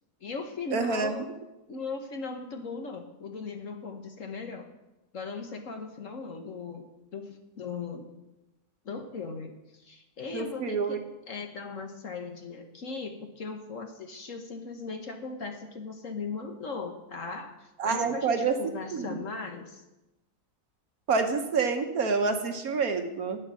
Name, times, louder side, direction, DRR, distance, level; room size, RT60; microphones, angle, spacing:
voice 1, 0.2-1.3 1.7-4.7 5.1-8.1 8.8-19.8, left 4 dB, 50° left, 5 dB, 1.3 m, -38 dB
voice 2, 0.7-1.2 10.3-11.0 17.8-18.5 18.9-19.2 21.1-23.4, right 5 dB, 60° right, 6 dB, 1.3 m, -27 dB
11.5 x 8.8 x 6.1 m, 0.97 s
omnidirectional pair, 1.9 m